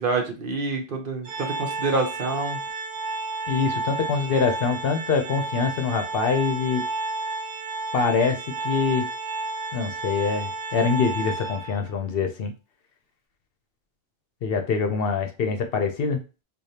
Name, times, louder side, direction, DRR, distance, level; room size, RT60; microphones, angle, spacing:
voice 1, 0.0-2.6, right 3 dB, 55° right, 3 dB, 0.9 m, -27 dB
Organ, 1.3-12.0, right 3 dB, 85° right, 0.9 m, -32 dB
voice 2, 3.5-6.9 7.9-9.1 9.7-12.5 14.4-16.2, left 5 dB, 65° left, 6 dB, 0.8 m, -24 dB
4.9 x 2.3 x 2.7 m, 0.31 s
omnidirectional pair, 1.1 m